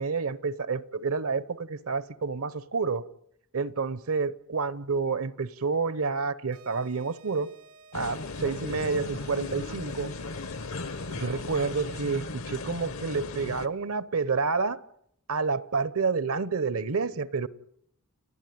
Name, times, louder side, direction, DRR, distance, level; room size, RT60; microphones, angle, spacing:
voice 1, 0.0-3.1 3.5-7.5 7.9-10.1 11.1-14.8 15.3-17.5, right 4 dB, 75° right, 0.9 m, -29 dB
sound 1, 6.5-12.5, right 4 dB, 90° right, 2.9 m, -54 dB
sound 2, 7.9-13.7, left 3 dB, 70° left, 1.0 m, -37 dB
30.0 x 10.0 x 9.5 m
head